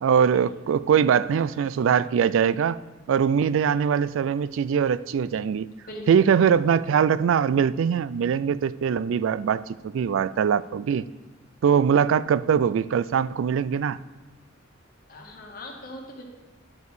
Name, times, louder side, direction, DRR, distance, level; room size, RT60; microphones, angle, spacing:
voice 1, 0.0-2.8 3.1-5.7 6.1-11.1 11.6-14.0, right 7 dB, 70° right, 18 dB, 0.3 m, -22 dB
voice 2, 5.9-6.2 15.1-16.2, left 1 dB, 45° left, 0 dB, 2.0 m, -39 dB
11.0 x 4.7 x 6.6 m, 1.3 s
head